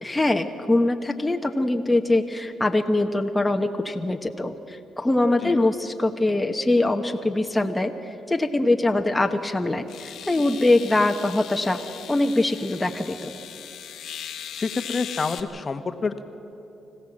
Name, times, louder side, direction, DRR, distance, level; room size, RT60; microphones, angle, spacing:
voice 1, 0.0-7.9 8.3-11.8 12.1-13.3, left 2 dB, 10° left, 4 dB, 1.0 m, -23 dB
sound 1, 9.0-9.1 9.9-15.4, left 9 dB, 70° left, 1.2 m, -38 dB
voice 2, 14.5-16.2, left 4 dB, 35° left, 8 dB, 1.1 m, -28 dB
25.5 x 16.0 x 7.5 m, 3.0 s
cardioid pair, 90°, 0 cm